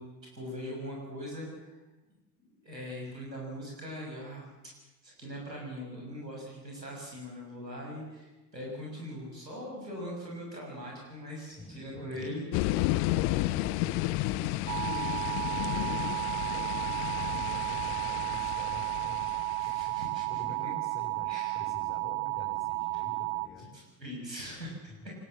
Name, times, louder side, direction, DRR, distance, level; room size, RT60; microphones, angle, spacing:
voice 1, 0.0-1.8 2.6-4.7 5.0-12.4 19.6-20.4 21.3-21.6 23.6-25.1, equal, 85° right, -2 dB, 6.3 m, -41 dB
voice 2, 11.5-12.4 12.9-16.8 17.1-20.0 20.3-23.7 24.9-25.0, left 2 dB, 15° left, -4 dB, 6.5 m, -48 dB
sound 1, 12.5-20.0, left 17 dB, 45° left, 0.9 m, -32 dB
sound 2, 14.7-23.5, right 20 dB, 35° right, 1.1 m, -33 dB
23.5 x 20.5 x 7.3 m, 1.1 s
figure-of-eight pair, 70°, 49 cm